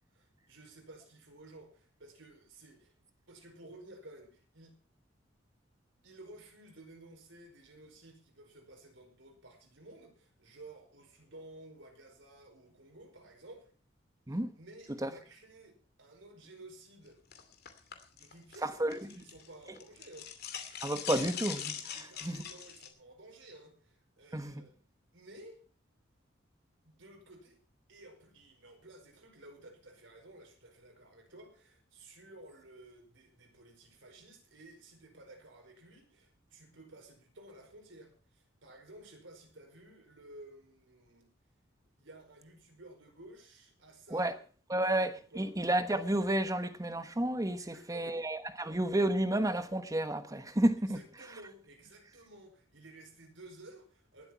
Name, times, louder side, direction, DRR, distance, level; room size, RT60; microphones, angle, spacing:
voice 1, 0.1-2.9 3.3-4.8 6.0-13.7 14.3-17.2 18.1-20.3 21.9-24.7 25.1-25.6 26.8-27.6 27.9-41.3 42.0-44.4 44.8-45.5 47.6-48.2 50.8-54.3, right 2 dB, 75° right, 5.0 m, -54 dB
sound 1, 17.3-19.5 19.7-22.9, left 8 dB, 55° left, 2.6 m, -41 dB
voice 2, 18.6-19.1 20.8-22.4 24.3-24.6 44.1-44.3 44.7-51.0, right 1 dB, 20° right, 1.2 m, -31 dB
20.0 x 8.2 x 5.8 m
head